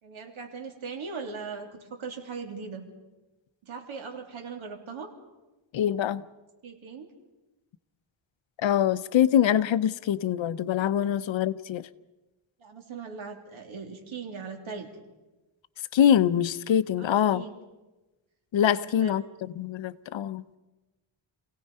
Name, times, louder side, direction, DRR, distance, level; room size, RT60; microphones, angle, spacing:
voice 1, 0.0-2.8 3.6-5.1 6.6-7.1 12.6-15.0 17.0-17.5 18.7-19.2, right 5 dB, 70° right, 3.3 m, -39 dB
voice 2, 5.7-6.2 8.6-11.9 15.9-17.4 18.5-20.6, left 10 dB, 65° left, 0.7 m, -24 dB
28.0 x 17.0 x 5.5 m
wide cardioid pair, 140°, 49 cm